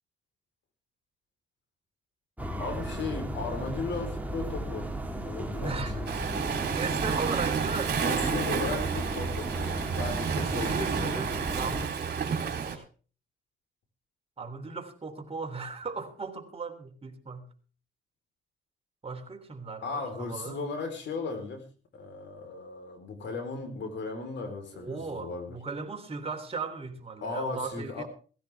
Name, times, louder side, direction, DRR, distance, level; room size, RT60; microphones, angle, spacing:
sound 1, 2.4-11.9, equal, 10° right, 2.3 m, -35 dB
voice 1, 2.6-4.9 5.2-6.1 7.9-11.1 19.8-21.7 21.9-25.6 27.2-28.0, left 3 dB, 65° left, 4.4 m, -36 dB
voice 2, 5.6-5.9 6.6-8.0 10.3-12.8 14.4-17.5 19.0-20.6 24.7-28.0, right 4 dB, 30° right, 3.3 m, -37 dB
Waves surf, 6.1-12.8, right 6 dB, 55° right, 3.5 m, -30 dB
16.0 x 16.0 x 3.5 m
cardioid pair, 90°, 20 cm